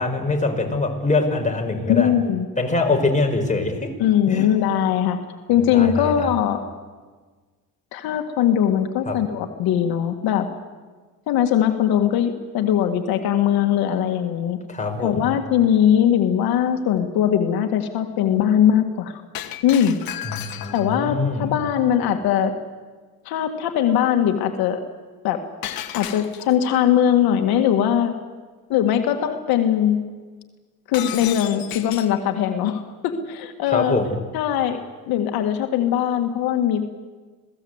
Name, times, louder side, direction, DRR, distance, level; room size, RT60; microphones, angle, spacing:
voice 1, 0.0-2.1 2.6-3.9 4.3-4.5 5.7-6.3 9.0-9.2 14.7-15.3 20.2-21.5 33.7-34.2, left 3 dB, 20° left, 3 dB, 5.1 m, -23 dB
voice 2, 1.8-2.5 4.0-5.2 5.5-6.6 7.9-10.5 11.3-14.6 15.0-19.2 19.6-20.0 20.7-22.5 23.3-24.8 25.2-25.4 26.0-28.1 28.7-30.0 30.9-34.0 34.3-34.8 35.1-36.9, left 9 dB, 90° left, 5 dB, 1.9 m, -20 dB
Shatter, 19.3-21.0 25.6-26.7 30.9-32.2, left 11 dB, 75° left, 1.7 m, -33 dB
27.5 x 18.0 x 8.1 m, 1.4 s
cardioid pair, 95°, 36 cm